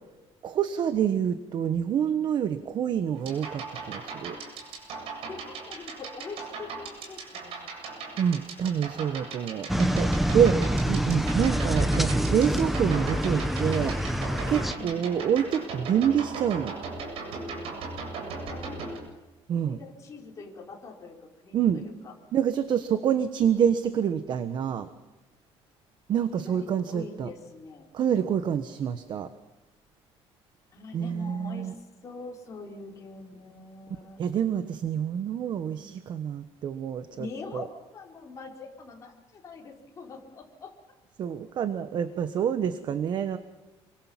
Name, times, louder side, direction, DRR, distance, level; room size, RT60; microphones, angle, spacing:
voice 1, 0.4-4.4 8.2-14.0 14.5-16.7 19.5-19.8 21.5-21.8 22.3-24.9 26.1-27.3 27.9-29.3 30.9-31.7 34.2-37.7 41.2-43.4, right 8 dB, 45° right, 10 dB, 1.2 m, -27 dB
sound 1, 3.2-19.0, right 4 dB, 60° right, 7.9 m, -39 dB
voice 2, 5.3-8.2 14.7-15.1 18.5-18.8 19.6-21.1 21.4-22.1 26.4-27.9 30.7-34.2 35.7-36.1 37.2-37.7 37.9-40.7, left 3 dB, 30° left, -1 dB, 5.1 m, -44 dB
sound 2, 9.7-14.7, equal, ahead, 1.0 m, -26 dB
27.5 x 24.0 x 7.4 m, 1.1 s
cardioid pair, 175°, 11 cm